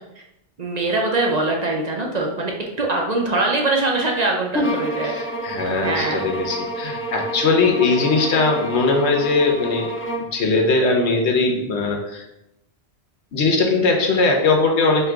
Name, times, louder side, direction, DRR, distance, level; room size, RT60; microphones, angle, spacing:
voice 1, 0.6-5.2 5.8-6.3, right 2 dB, 45° right, 0 dB, 0.7 m, -22 dB
sound 1, 4.6-10.4, right 1 dB, 15° left, 0.5 m, -29 dB
voice 2, 5.0-9.9 10.3-12.2 13.3-15.1, left 3 dB, 90° left, 2 dB, 1.1 m, -20 dB
3.7 x 2.9 x 4.5 m, 0.87 s
omnidirectional pair, 1.1 m